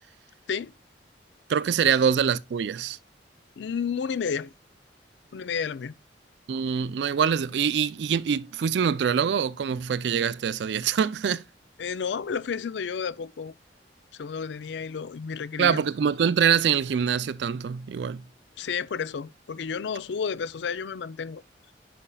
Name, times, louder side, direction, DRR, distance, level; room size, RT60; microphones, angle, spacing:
voice 1, 1.5-3.0 6.5-11.4 15.6-18.2, right 7 dB, 70° right, 0.4 m, -24 dB
voice 2, 3.6-4.5 5.3-6.0 11.8-13.5 14.1-15.8 18.6-21.4, left 6 dB, 70° left, 0.4 m, -31 dB
9.6 x 5.1 x 2.2 m
head